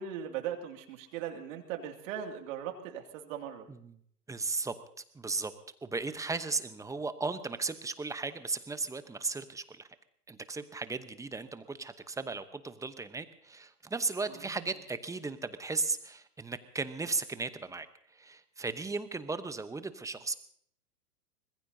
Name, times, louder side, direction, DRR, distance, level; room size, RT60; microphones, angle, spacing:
voice 1, 0.0-3.7 14.3-14.6, right 9 dB, 55° right, 5 dB, 2.5 m, -39 dB
voice 2, 4.3-4.7 5.1-5.5 5.8-9.9 10.3-17.9 18.1-20.3, right 3 dB, 5° right, 11 dB, 0.9 m, -36 dB
25.0 x 20.5 x 2.7 m, 0.65 s
hypercardioid pair, 110°, 48 cm